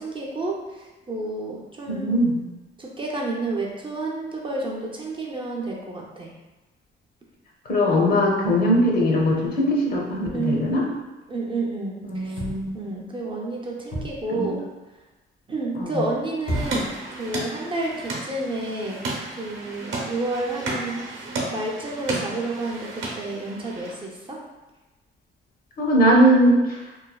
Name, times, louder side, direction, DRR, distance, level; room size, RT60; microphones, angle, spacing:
voice 1, 0.0-2.2 2.8-6.3 10.3-10.7 11.3-12.4 12.7-14.7 15.5-16.9 17.2-19.0 19.4-24.4, right 2 dB, 25° right, -2 dB, 0.5 m, -30 dB
voice 2, 1.9-2.4 7.7-10.8 12.1-12.9 14.3-14.5 15.8-16.0 25.8-26.8, equal, 50° left, -2 dB, 0.7 m, -20 dB
sound 1, 12.4-12.9 13.9-14.4 16.4-17.1 17.9-18.0, equal, 85° left, 1.3 m, -31 dB
sound 2, 16.5-23.9, right 2 dB, 75° right, 0.7 m, -33 dB
3.1 x 2.1 x 2.3 m, 1.1 s
cardioid pair, 90°, 20 cm